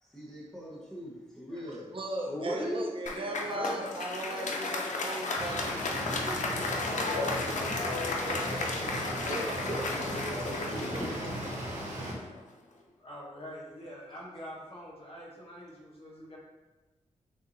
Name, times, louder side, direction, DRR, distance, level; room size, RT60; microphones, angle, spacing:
voice 1, 0.0-1.9 9.6-11.1, equal, 5° left, -6 dB, 1.1 m, -42 dB
voice 2, 1.7-7.6 8.2-10.0 10.9-11.0, right 1 dB, 45° right, -1 dB, 0.8 m, -38 dB
voice 3, 2.3-2.9 3.5-3.8 13.0-16.4, left 1 dB, 50° left, -5 dB, 1.3 m, -40 dB
Applause, 3.1-12.4, left 3 dB, 75° left, 0.5 m, -34 dB
sound 1, 5.3-12.1, right 1 dB, 75° right, 1.1 m, -38 dB
6.3 x 2.7 x 2.7 m, 1.2 s
wide cardioid pair, 105°, 13 cm